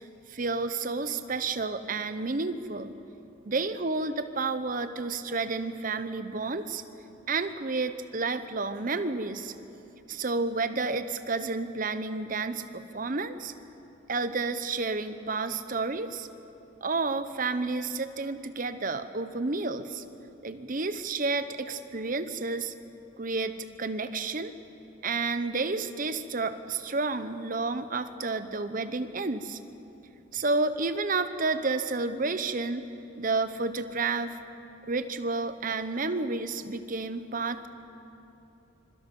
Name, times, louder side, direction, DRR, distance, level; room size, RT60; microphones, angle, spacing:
voice 1, 0.3-2.9 3.4-6.8 7.3-9.5 10.1-13.5 14.1-16.3 16.8-20.0 20.4-22.7 23.2-24.6 25.0-29.6 30.3-32.9 33.2-34.4 34.9-37.7, right 3 dB, 40° right, 10 dB, 0.8 m, -30 dB
25.5 x 23.0 x 5.4 m, 3.0 s
head